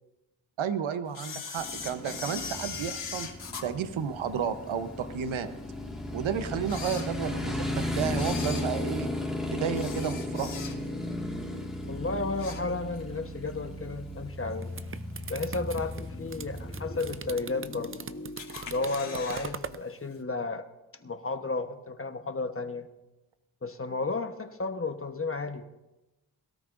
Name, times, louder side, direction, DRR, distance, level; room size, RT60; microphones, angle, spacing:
voice 1, 0.6-3.3 3.6-5.5 6.1-9.1 9.5-10.6, right 7 dB, 70° right, 10 dB, 1.0 m, -32 dB
Camera, 1.1-4.7 5.2-5.3 6.0-6.1 6.6-7.6 8.1-11.1 11.4-11.7 12.1-13.1 13.5-13.6 14.5-14.6 15.2-15.6 16.0-16.1 16.3-16.4 16.6-16.7 17.4-17.9 18.4-19.5 19.8-19.9 20.1-20.2, left 6 dB, 60° left, 2.7 m, -40 dB
Motorcycle, 1.6-17.3, left 1 dB, ahead, 1.9 m, -35 dB
voice 2, 11.9-14.7 15.3-20.6 21.0-22.9 23.6-25.7, left 3 dB, 25° left, 7 dB, 1.1 m, -33 dB
sound 1, 14.4-19.8, right 6 dB, 25° right, 0.5 m, -41 dB
22.5 x 13.0 x 2.6 m, 1.0 s
cardioid pair, 60°, 49 cm